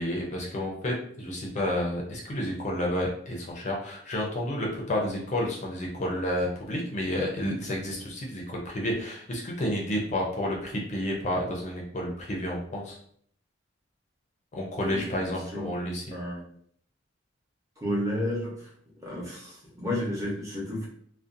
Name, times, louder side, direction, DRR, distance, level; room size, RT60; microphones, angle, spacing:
voice 1, 0.0-13.0 14.5-16.0, left 1 dB, 40° left, -1 dB, 0.5 m, -30 dB
voice 2, 16.1-16.5 17.8-18.7 19.0-20.9, left 1 dB, 15° right, -5 dB, 0.7 m, -31 dB
2.5 x 2.1 x 2.5 m, 0.62 s
head